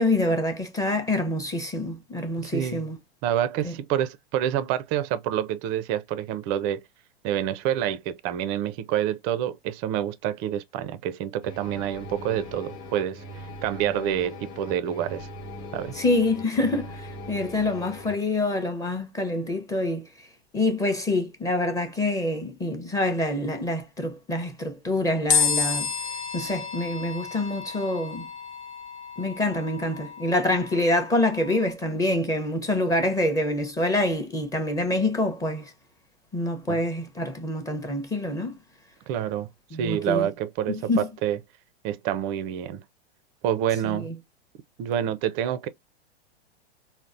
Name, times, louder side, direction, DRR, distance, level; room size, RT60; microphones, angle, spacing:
voice 1, 0.0-3.0 3.6-3.7 15.9-20.0 20.5-25.9 26.3-28.3 29.2-35.7 36.3-38.6 39.7-40.3 40.7-41.1 43.8-44.1, left 2 dB, 10° left, 0.6 m, -26 dB
voice 2, 2.4-2.9 3.2-6.8 7.2-13.2 13.6-15.3 15.7-15.9 36.7-36.8 39.1-39.5 39.8-41.4 41.8-42.8 43.4-44.1 44.8-45.7, right 10 dB, 30° right, 0.4 m, -27 dB
sound 1, 11.4-18.1, left 1 dB, 35° left, 1.0 m, -40 dB
sound 2, 25.3-31.7, left 6 dB, 85° left, 0.8 m, -30 dB
3.9 x 2.0 x 2.4 m
hypercardioid pair, 110°, 32 cm